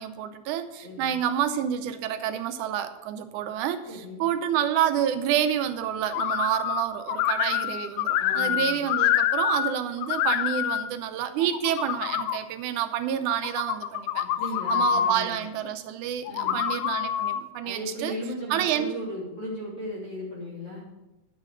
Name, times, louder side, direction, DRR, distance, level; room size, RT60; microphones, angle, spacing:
voice 1, 0.0-14.3 14.7-18.1 18.5-18.9, right 10 dB, 80° right, 9 dB, 2.1 m, -28 dB
voice 2, 0.8-1.1 3.9-4.2 8.2-8.8 14.4-15.4 16.3-16.6 17.6-20.8, equal, 45° left, -5 dB, 3.8 m, -36 dB
sound 1, 6.1-6.8 7.1-9.7 10.0-10.9 11.4-12.4 13.3-15.1 16.3-17.4, left 10 dB, 80° left, 1.9 m, -26 dB
10.5 x 6.1 x 6.5 m, 1.0 s
omnidirectional pair, 3.7 m